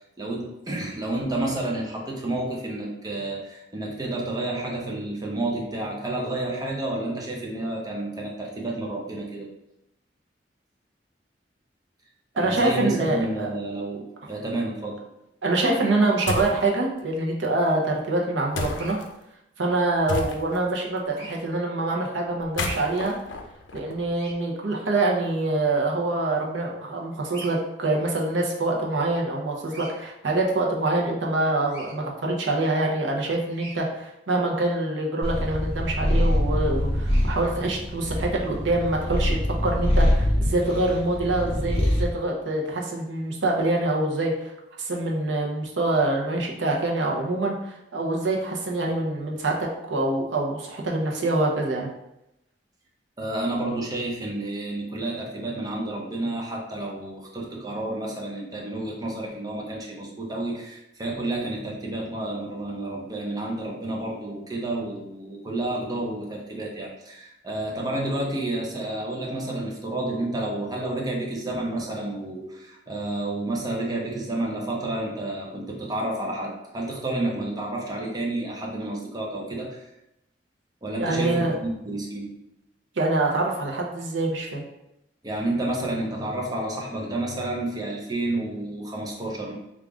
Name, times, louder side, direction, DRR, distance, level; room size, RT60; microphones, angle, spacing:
voice 1, 0.2-9.5 12.4-15.0 53.2-79.9 80.8-82.3 85.2-89.5, right 2 dB, 20° right, -2 dB, 0.6 m, -30 dB
voice 2, 12.4-13.5 15.4-19.0 19.6-23.2 23.7-44.5 44.8-51.9 81.0-81.5 83.0-84.6, right 2 dB, 85° right, 0 dB, 0.7 m, -25 dB
sound 1, 16.3-16.6 18.5-19.1 20.1-20.7 22.4-24.3, left 2 dB, 85° left, 0.5 m, -32 dB
Bird vocalization bird call bird song, 18.7-18.9 21.1-21.4 24.1-24.3 27.3-27.6 29.6-29.9 31.7-31.9 33.5-33.8 37.0-37.3, right 2 dB, 65° right, 1.0 m, -43 dB
Purr, 35.2-42.1, left 1 dB, 30° left, 0.7 m, -24 dB
3.6 x 2.4 x 3.5 m, 0.87 s
head